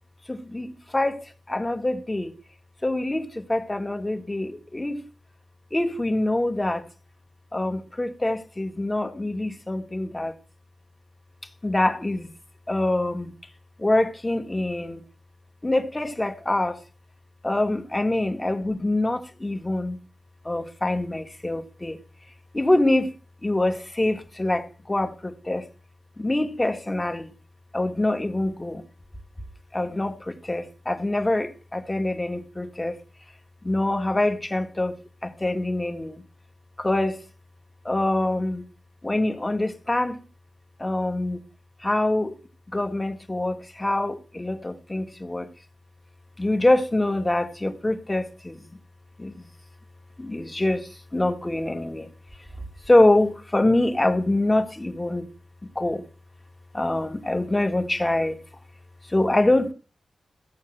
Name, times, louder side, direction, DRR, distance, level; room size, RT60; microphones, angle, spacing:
voice 1, 0.3-1.2 1.5-2.3 2.8-5.0 5.7-6.9 7.5-10.3 11.6-12.3 12.7-13.3 13.8-15.0 15.6-16.8 17.4-20.0 20.4-22.0 22.5-23.1 23.4-25.7 26.2-27.3 27.7-28.8 29.7-33.0 33.6-36.2 36.8-37.2 37.8-38.6 39.0-40.2 40.8-41.4 41.8-42.3 42.7-45.5 46.4-48.7 49.2-49.5 50.2-52.1 52.9-55.3 55.6-56.0 56.7-58.4 59.1-59.7, left 1 dB, 20° left, 1.7 m, -25 dB
15.5 x 5.7 x 7.8 m
cardioid pair, 80°, 0 cm